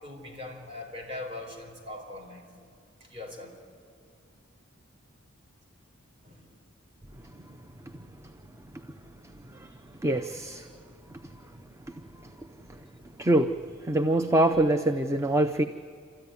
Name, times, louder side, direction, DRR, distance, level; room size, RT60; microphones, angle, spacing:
voice 1, 0.0-2.5 3.1-3.6 6.2-6.4, left 2 dB, 30° right, 0 dB, 4.5 m, -41 dB
voice 2, 10.0-10.7 11.1-11.3 12.2-12.3 13.2-13.5 13.8-15.6, right 1 dB, 15° right, 7 dB, 0.5 m, -24 dB
27.5 x 13.5 x 9.6 m, 2.2 s
head